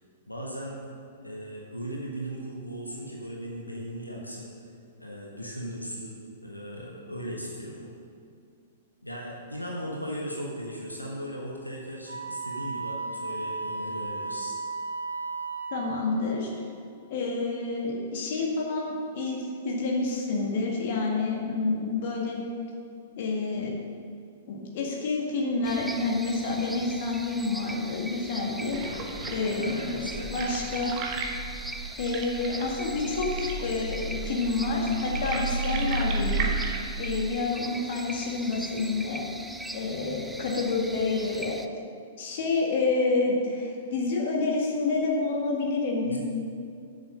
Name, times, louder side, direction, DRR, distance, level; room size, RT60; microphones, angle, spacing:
voice 1, 0.3-0.8 1.2-4.5 5.0-7.9 9.0-14.6 28.8-30.3 46.0-46.2, equal, 85° left, -2 dB, 1.2 m, -38 dB
Wind instrument woodwind instrument, 12.1-16.2, right 3 dB, 80° right, 0.7 m, -35 dB
voice 2, 15.7-16.5 17.1-22.4 23.2-23.7 24.5-28.8 29.3-30.9 32.0-36.4 37.0-39.2 39.7-41.6 42.2-46.2, left 3 dB, 45° left, -1 dB, 1.9 m, -28 dB
sound 1, 25.6-41.7, right 1 dB, 5° right, 0.4 m, -41 dB
sound 2, 28.7-36.9, right 3 dB, 35° right, 1.1 m, -33 dB
7.7 x 6.9 x 6.5 m, 2.4 s
figure-of-eight pair, 105°, 0 cm